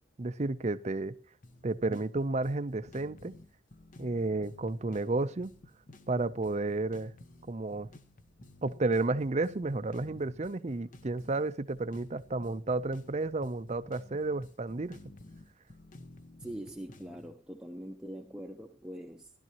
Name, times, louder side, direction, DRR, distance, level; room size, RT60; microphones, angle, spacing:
voice 1, 0.2-1.1 1.6-3.3 4.0-5.5 6.1-7.1 7.5-7.9 8.6-15.0, right 2 dB, 35° right, 0.5 m, -32 dB
sound 1, 1.4-17.3, left 2 dB, 45° left, 0.9 m, -54 dB
voice 2, 16.4-19.3, right 1 dB, 5° right, 0.8 m, -43 dB
16.5 x 12.0 x 2.9 m
head